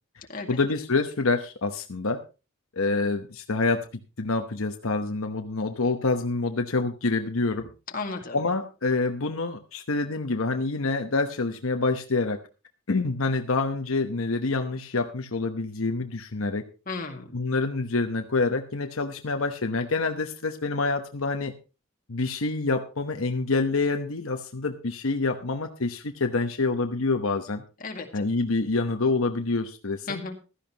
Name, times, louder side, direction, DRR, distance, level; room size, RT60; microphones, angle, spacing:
voice 1, 0.5-2.2 2.8-3.8 4.2-7.7 8.3-12.4 12.9-16.6 17.3-21.5 22.1-27.6 28.1-30.2, left 3 dB, 80° left, 5 dB, 1.0 m, -27 dB
voice 2, 7.9-8.4 16.9-17.4 27.8-28.3 30.1-30.4, left 3 dB, 40° left, 3 dB, 2.0 m, -34 dB
15.5 x 13.0 x 2.9 m, 0.31 s
head